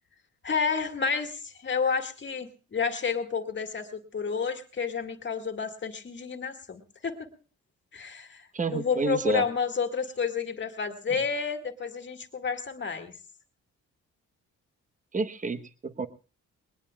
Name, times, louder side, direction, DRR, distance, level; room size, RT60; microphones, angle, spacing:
voice 1, 0.4-7.3 7.9-13.1, left 5 dB, 40° left, 6 dB, 2.0 m, -30 dB
voice 2, 8.5-9.4 15.1-16.1, right 3 dB, 25° right, 11 dB, 1.1 m, -29 dB
20.0 x 20.0 x 2.3 m, 0.34 s
cardioid pair, 90°, 30 cm